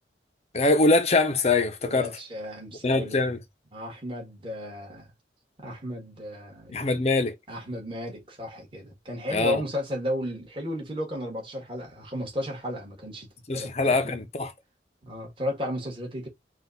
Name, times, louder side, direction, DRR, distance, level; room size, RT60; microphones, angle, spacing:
voice 1, 0.5-2.1 2.8-3.4 6.7-7.3 9.3-9.6 13.5-14.5, left 2 dB, 35° left, 0.7 m, -23 dB
voice 2, 1.8-3.2 3.7-5.1 5.6-7.0 7.5-13.3 13.5-14.1 15.0-16.3, equal, 30° right, 1.7 m, -34 dB
4.2 x 2.5 x 3.8 m
head